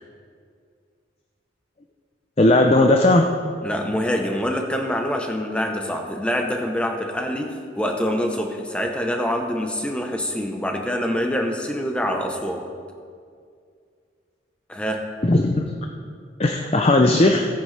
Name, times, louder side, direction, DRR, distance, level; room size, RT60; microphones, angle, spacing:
voice 1, 2.4-3.3 15.2-15.6 16.4-17.5, left 2 dB, 30° left, 3 dB, 0.5 m, -16 dB
voice 2, 3.6-12.7 14.7-15.1, equal, 5° left, 3 dB, 0.9 m, -25 dB
16.5 x 9.6 x 3.4 m, 2.2 s
head